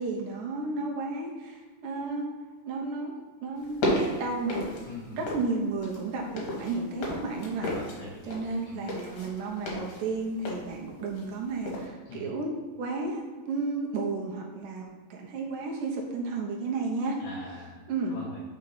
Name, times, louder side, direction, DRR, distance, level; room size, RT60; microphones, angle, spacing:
voice 1, 0.0-2.3 2.7-3.1 3.4-4.7 5.1-7.8 8.2-17.2 17.9-18.2, right 3 dB, 85° right, -1 dB, 1.8 m, -32 dB
sound 1, 3.6-5.5 5.8-11.4 11.7-11.9, left 1 dB, 60° left, 2.2 m, -33 dB
voice 2, 4.8-5.2 7.7-8.4 8.7-8.8 12.1-12.3 17.2-18.4, left 2 dB, 75° left, -5 dB, 1.8 m, -44 dB
5.5 x 5.1 x 5.5 m, 1.4 s
omnidirectional pair, 5.1 m